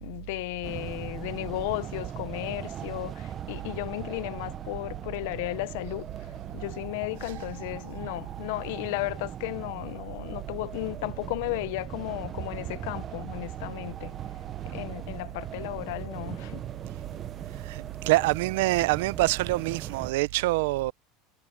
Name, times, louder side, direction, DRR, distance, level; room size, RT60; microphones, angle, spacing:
voice 1, 0.0-14.1 14.6-16.6, left 21 dB, 65° left, 0.6 m, -34 dB
sound 1, 0.6-20.1, right 9 dB, 25° right, 0.6 m, -39 dB
voice 2, 17.6-20.9, right 20 dB, 75° right, 0.5 m, -25 dB
cardioid pair, 170°, 0 cm